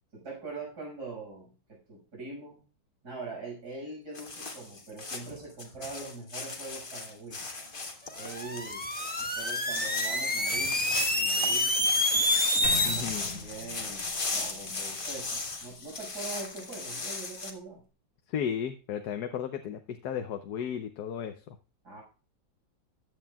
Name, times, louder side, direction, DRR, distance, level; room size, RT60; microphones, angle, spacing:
voice 1, 0.1-2.6 3.0-7.4 8.2-8.9 9.2-11.8 12.6-17.8 21.8-22.0, right 3 dB, 85° right, -2 dB, 6.6 m, -43 dB
sound 1, 4.1-17.5, left 3 dB, 35° left, 1.6 m, -37 dB
sound 2, 8.2-13.0, left 1 dB, 5° left, 1.1 m, -27 dB
sound 3, 12.6-16.6, equal, 35° right, 3.2 m, -43 dB
voice 2, 12.8-13.3 18.3-21.3, left 8 dB, 80° left, 7 dB, 1.3 m, -34 dB
14.5 x 9.8 x 2.3 m, 0.34 s
omnidirectional pair, 1.7 m